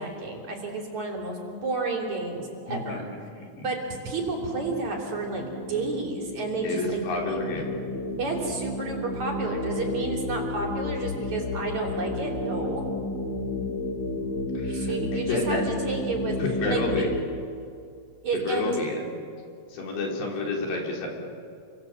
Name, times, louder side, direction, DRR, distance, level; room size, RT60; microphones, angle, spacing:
voice 1, 0.0-3.0 3.6-7.0 7.3-7.5 8.2-12.8 14.6-15.6 15.8-16.3 16.7-17.1 18.2-18.8, right 3 dB, 45° right, 0 dB, 4.7 m, -31 dB
voice 2, 2.7-3.0 3.4-3.7 6.6-7.7 14.5-15.6 16.4-17.1 18.3-19.2 19.7-21.1, left 3 dB, 75° left, 0 dB, 6.2 m, -30 dB
sound 1, 3.4-17.2, left 2 dB, 55° left, 4.1 m, -32 dB
30.0 x 24.5 x 7.7 m, 2.4 s
omnidirectional pair, 4.9 m